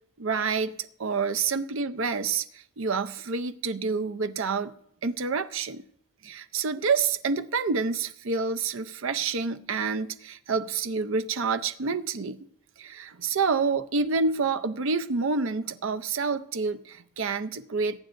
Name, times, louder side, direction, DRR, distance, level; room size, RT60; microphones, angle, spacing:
voice 1, 0.2-4.7 5.0-5.8 6.2-12.4 12.8-18.0, right 4 dB, 65° right, 0.6 m, -28 dB
22.5 x 9.0 x 2.6 m
head